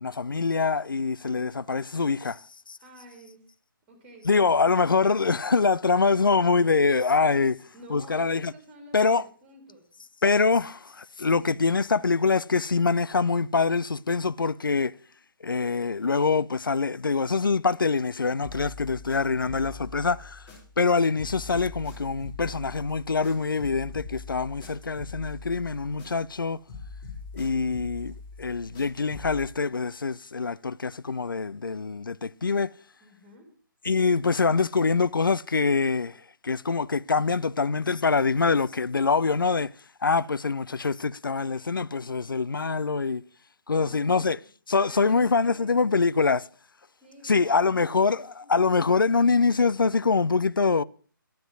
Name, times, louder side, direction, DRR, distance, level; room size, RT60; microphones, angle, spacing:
voice 1, 0.0-2.4 2.7-2.8 4.3-7.6 7.9-8.5 8.9-9.2 10.2-14.9 15.4-20.4 20.8-26.6 27.3-32.7 33.8-36.2 36.4-39.7 40.0-43.2 43.7-44.4 44.7-46.4 47.2-50.8, left 4 dB, 70° left, 0.4 m, -24 dB
voice 2, 2.8-3.5 3.9-4.8 7.7-9.9 11.4-11.6 33.0-33.5 38.7-38.8 43.7-44.5 44.7-45.9 47.0-48.6, right 1 dB, 15° right, 2.5 m, -50 dB
sound 1, 18.4-20.9 21.2-26.4 26.7-29.5, left 4 dB, 15° left, 4.6 m, -43 dB
11.5 x 7.9 x 6.1 m
figure-of-eight pair, 145°, 12 cm